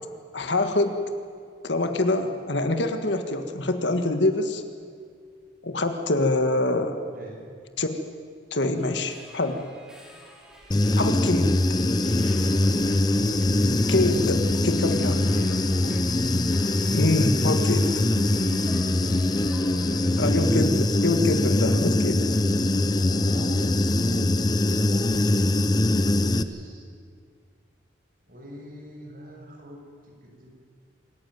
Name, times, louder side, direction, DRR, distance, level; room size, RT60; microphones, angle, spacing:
voice 1, 0.3-1.0 1.6-4.6 5.6-7.0 7.8-7.9 8.5-9.7 11.0-11.5 13.9-15.3 16.9-17.9 20.2-22.2, left 2 dB, 70° left, 7 dB, 1.8 m, -25 dB
Subway metro underground, 8.8-20.4, equal, 5° right, 3.0 m, -48 dB
Human voice / Buzz, 10.7-26.4, left 1 dB, 20° left, 0.6 m, -22 dB
voice 2, 15.3-16.1 18.3-18.5 18.9-19.2 19.6-20.4 22.0-24.4 24.8-25.3 26.0-26.9 28.3-29.8 30.2-30.5, equal, 45° right, 0 dB, 6.1 m, -41 dB
26.5 x 15.0 x 9.4 m, 2.1 s
head